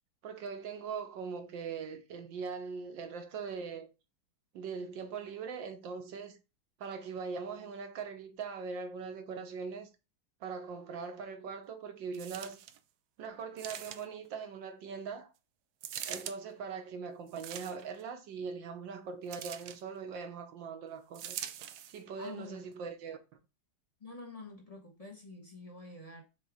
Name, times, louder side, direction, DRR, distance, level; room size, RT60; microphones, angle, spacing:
voice 1, 0.2-3.9 4.5-6.4 6.8-9.9 10.4-12.6 13.2-15.3 16.1-21.4 21.9-23.2, right 5 dB, 65° right, 1.5 m, -41 dB
sound 1, 12.1-12.8 13.6-14.3 15.8-16.4 17.3-18.0 19.3-19.8 21.1-22.0 22.7-22.8, right 10 dB, 85° right, 0.8 m, -43 dB
voice 2, 22.2-22.7 24.0-26.2, left 3 dB, 25° left, 1.0 m, -47 dB
6.7 x 3.0 x 4.8 m
omnidirectional pair, 2.3 m